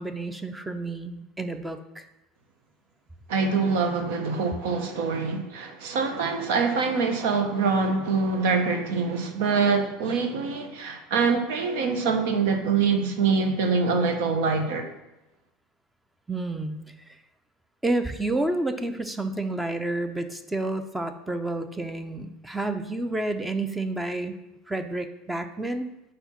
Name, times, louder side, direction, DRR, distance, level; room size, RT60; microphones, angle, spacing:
voice 1, 0.0-2.0 16.3-17.2 17.8-24.4 24.7-25.9, right 2 dB, 10° right, 0.5 m, -30 dB
voice 2, 3.3-14.9, right 4 dB, 80° right, 0.9 m, -24 dB
5.0 x 4.4 x 5.6 m
supercardioid pair, 110°, 0 cm